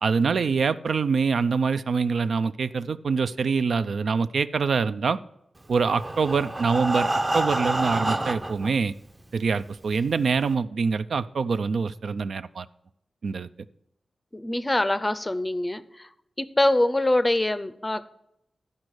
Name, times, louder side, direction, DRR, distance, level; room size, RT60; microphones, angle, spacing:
voice 1, 0.0-5.2 5.7-8.9 9.3-12.7 13.2-13.5, right 5 dB, 70° right, 13 dB, 0.4 m, -25 dB
Breathing, 5.8-8.7 9.5-9.6 9.9-10.0 10.5-10.6, right 1 dB, 25° right, 0.6 m, -27 dB
voice 2, 14.3-16.1 16.4-18.1, left 1 dB, 20° left, 13 dB, 0.5 m, -24 dB
12.0 x 5.2 x 6.4 m, 0.80 s
wide cardioid pair, 100°, 0 cm